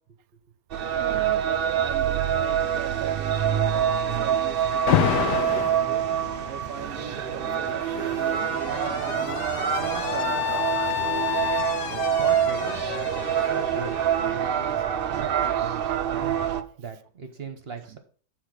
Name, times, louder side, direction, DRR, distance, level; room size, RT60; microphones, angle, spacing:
sound 1, 0.7-16.6, right 9 dB, 85° right, 0.5 m, -26 dB
voice 1, 0.9-6.2 6.4-9.5 9.7-10.5 17.9-18.0, right 11 dB, 70° right, 0.9 m, -40 dB
Alarm, 4.9-5.8 7.1-14.8, left 10 dB, 90° left, 1.3 m, -29 dB
Wind / Ocean, 5.2-13.1, left 3 dB, 30° left, 2.3 m, -45 dB
voice 2, 11.8-16.3 16.8-18.0, right 4 dB, 45° right, 1.0 m, -38 dB
7.9 x 4.0 x 6.4 m
omnidirectional pair, 1.7 m